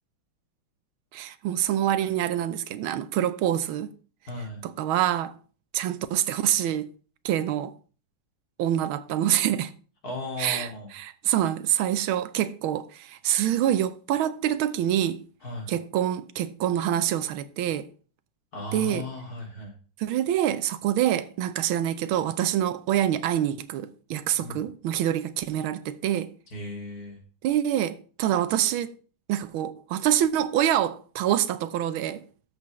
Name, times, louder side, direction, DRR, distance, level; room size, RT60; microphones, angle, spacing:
voice 1, 1.1-3.9 4.6-5.4 5.7-6.9 7.2-7.7 8.6-9.7 10.4-15.2 15.7-17.9 18.7-19.1 20.0-26.3 27.4-28.9 29.3-32.2, right 11 dB, 85° right, 1.5 m, -26 dB
voice 2, 4.3-4.6 10.0-10.9 15.4-15.7 18.5-19.7 24.4-24.6 26.5-27.2, left 2 dB, 45° left, 3.0 m, -36 dB
13.0 x 7.2 x 3.1 m
omnidirectional pair, 2.2 m